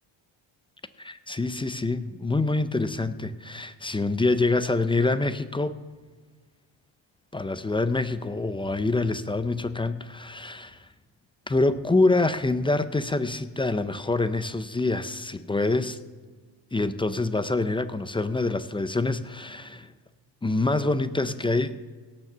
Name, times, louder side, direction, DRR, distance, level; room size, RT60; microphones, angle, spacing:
voice 1, 1.0-5.7 7.3-10.7 11.5-16.0 16.7-19.9 20.4-21.8, left 2 dB, 10° left, 12 dB, 0.4 m, -26 dB
17.5 x 7.3 x 6.7 m, 1.5 s
cardioid pair, 135°, 48 cm